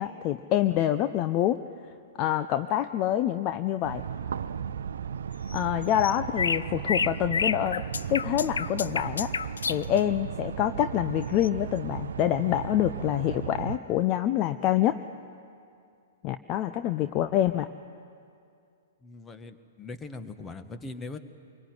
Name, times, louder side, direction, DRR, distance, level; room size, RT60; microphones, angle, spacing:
voice 1, 0.0-1.6 2.2-4.0 5.5-7.8 8.1-9.3 9.7-15.0 16.2-17.7, left 12 dB, 35° left, 10 dB, 0.7 m, -26 dB
sound 1, 3.8-13.8, right 7 dB, 65° right, 0.6 m, -36 dB
sound 2, 5.5-10.0 11.4-11.5, left 5 dB, 70° left, 0.6 m, -29 dB
voice 2, 19.0-21.2, left 3 dB, 15° left, 9 dB, 1.6 m, -40 dB
26.5 x 23.0 x 9.6 m, 2.4 s
figure-of-eight pair, 110°, 0 cm